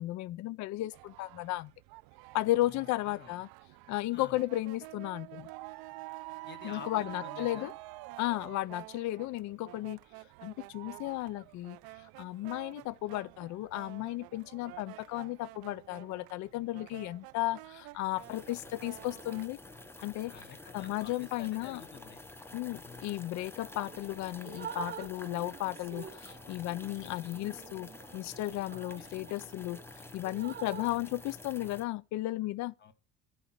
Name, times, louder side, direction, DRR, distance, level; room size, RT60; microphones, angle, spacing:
voice 1, 0.0-1.7 2.3-3.5 3.9-5.5 6.6-7.7 8.2-10.0 10.4-11.8 12.2-19.6 20.0-20.3 20.7-21.8 22.5-29.8 30.1-32.7, left 16 dB, 50° left, 0.5 m, -34 dB
sound 1, 0.9-19.5, right 20 dB, 75° right, 0.5 m, -49 dB
voice 2, 2.6-3.4 4.1-4.4 6.5-7.7 20.3-22.2 22.8-23.3 28.7-29.2 32.8-32.9, left 7 dB, 30° left, 1.2 m, -50 dB
sound 2, 18.1-31.8, left 2 dB, 5° left, 0.8 m, -49 dB
Drip, 23.9-24.1 24.4-29.8 30.2-30.9, right 8 dB, 25° right, 0.8 m, -46 dB
14.0 x 5.1 x 5.9 m
cardioid pair, 175°, 36 cm